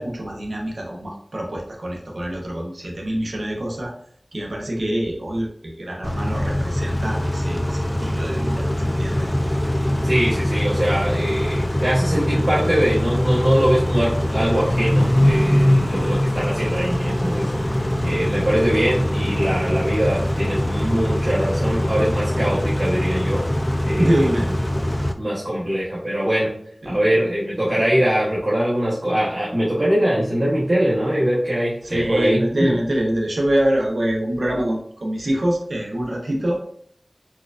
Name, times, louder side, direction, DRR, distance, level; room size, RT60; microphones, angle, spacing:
voice 1, 0.0-3.9 4.3-9.3 24.0-24.5 26.8-27.0 31.8-36.6, right 1 dB, 80° right, -1 dB, 0.7 m, -25 dB
Car / Idling / Accelerating revving vroom, 6.0-25.1, left 1 dB, 20° left, 0.3 m, -22 dB
voice 2, 10.0-17.7 18.0-23.4 23.8-24.3 25.2-26.5 26.8-32.7, equal, 55° right, -7 dB, 0.9 m, -22 dB
4.3 x 2.4 x 2.4 m, 0.64 s
wide cardioid pair, 50°, 0 cm